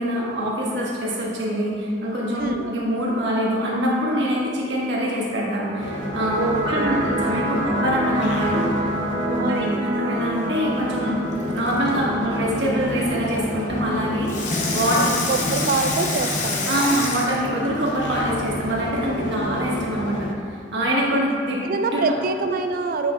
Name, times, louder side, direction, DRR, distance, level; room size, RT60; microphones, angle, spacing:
voice 1, 0.0-6.4 6.7-8.7 9.2-11.2 11.5-14.3 14.7-15.0 16.7-21.6 21.9-22.1, equal, 85° right, -4 dB, 1.3 m, -24 dB
voice 2, 2.4-2.7 6.4-7.1 9.4-9.9 15.0-17.1 19.0-19.7 21.1-21.3 21.6-23.1, right 3 dB, 55° right, 7 dB, 0.4 m, -26 dB
sound 1, 5.5-16.5, right 1 dB, 40° right, 1.3 m, -28 dB
sound 2, 5.8-20.3, left 1 dB, 80° left, 0.5 m, -33 dB
Water tap faucet / Sink (filling or washing), 11.3-12.0 14.3-18.2 18.9-19.0, left 2 dB, 45° left, 0.7 m, -27 dB
7.6 x 5.5 x 2.3 m, 2.2 s
head